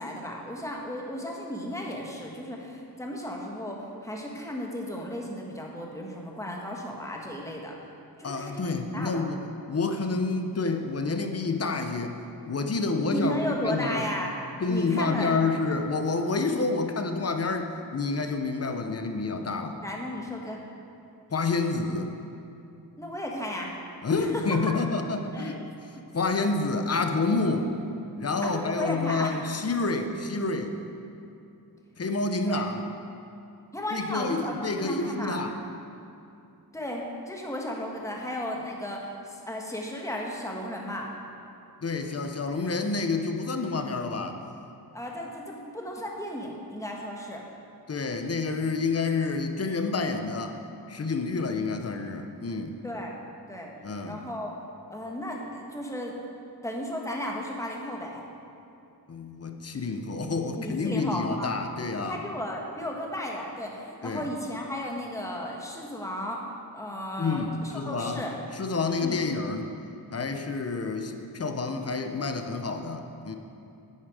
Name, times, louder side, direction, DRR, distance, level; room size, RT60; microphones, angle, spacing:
voice 1, 0.0-7.8 8.2-9.2 13.0-14.3 14.7-15.3 19.8-20.6 23.0-23.7 24.2-24.4 25.3-25.5 26.0-26.1 28.4-29.3 32.4-32.7 33.7-35.4 36.7-41.1 44.9-47.4 52.8-53.7 54.0-54.5 54.9-56.1 56.6-58.2 60.6-61.5 62.0-66.4 66.7-68.3 69.0-69.2, left 1 dB, 10° left, -1 dB, 1.4 m, -34 dB
voice 2, 8.2-9.4 9.7-12.1 12.5-14.1 14.6-19.8 21.3-22.1 24.0-25.6 26.1-27.7 28.2-30.8 32.0-32.8 33.9-35.5 41.8-44.4 47.9-50.6 50.9-52.8 53.8-54.2 59.1-62.2 64.0-64.3 67.2-68.2 68.5-69.7 70.1-73.4, left 3 dB, 40° left, 6 dB, 0.8 m, -28 dB
10.0 x 9.5 x 4.9 m, 2.7 s
wide cardioid pair, 125°, 40 cm